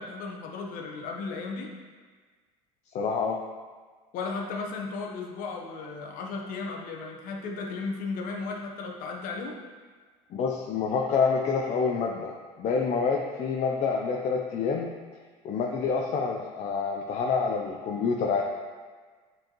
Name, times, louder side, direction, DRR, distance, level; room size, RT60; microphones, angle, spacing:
voice 1, 0.0-1.7 4.1-9.6, left 4 dB, 65° left, 1 dB, 1.0 m, -35 dB
voice 2, 2.9-3.4 10.3-14.9 15.4-18.4, left 5 dB, 45° left, 0 dB, 0.6 m, -27 dB
7.5 x 4.6 x 3.1 m, 1.5 s
supercardioid pair, 100°, 16 cm